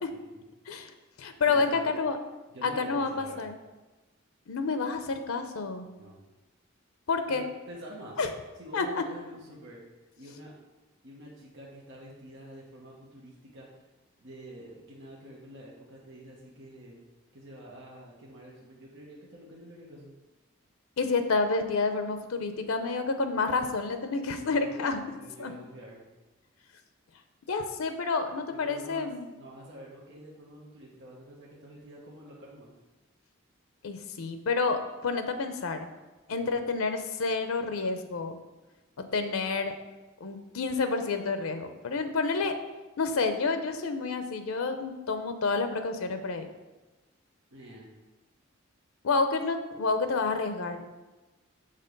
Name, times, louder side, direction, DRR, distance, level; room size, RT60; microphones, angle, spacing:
voice 1, 0.1-0.4 1.5-1.9 2.5-3.5 5.9-6.2 7.3-8.2 8.6-9.8 10.1-10.5 11.0-13.7 14.2-17.0 17.3-20.1 24.3-24.8 25.2-26.0 28.5-29.1 29.4-32.7 36.3-36.5 47.5-47.9, right 1 dB, 60° right, -4 dB, 1.1 m, -47 dB
voice 2, 1.2-2.2 2.6-3.6 4.5-5.9 7.1-7.4 8.2-8.3 8.7-9.0 21.0-25.0 25.4-25.5 27.5-29.3 33.8-35.9 36.3-38.3 39.0-39.7 40.2-42.5 43.0-46.5 49.0-50.8, left 4 dB, 90° left, 8 dB, 0.6 m, -29 dB
6.6 x 3.7 x 5.2 m, 1.1 s
head